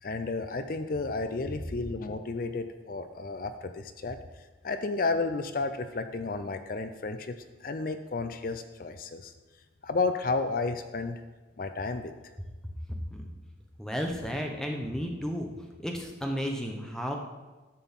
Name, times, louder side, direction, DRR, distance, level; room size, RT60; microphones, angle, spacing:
voice 1, 0.0-4.2 4.6-7.4 7.6-9.3 9.8-11.2 11.6-12.1, left 3 dB, 45° left, 9 dB, 0.5 m, -32 dB
voice 2, 13.8-15.5 15.8-17.2, equal, 5° left, 1 dB, 0.9 m, -33 dB
11.0 x 3.9 x 7.2 m, 1.2 s
head